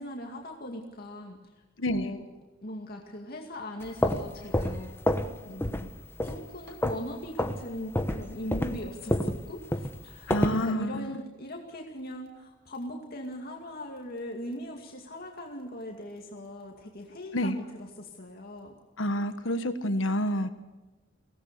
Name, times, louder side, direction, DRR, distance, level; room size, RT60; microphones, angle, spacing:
voice 1, 0.0-1.4 1.9-2.2 2.6-4.9 5.4-5.9 6.2-18.7, left 1 dB, 50° left, 1 dB, 2.4 m, -40 dB
voice 2, 1.8-2.1 10.3-11.1 17.3-17.6 19.0-20.5, equal, 80° left, 9 dB, 1.5 m, -28 dB
sound 1, 3.8-5.3 5.6-5.9 6.2-7.1 7.4-7.6 7.9-10.6, left 1 dB, 10° left, 1.1 m, -28 dB
24.0 x 18.0 x 6.8 m, 1.1 s
head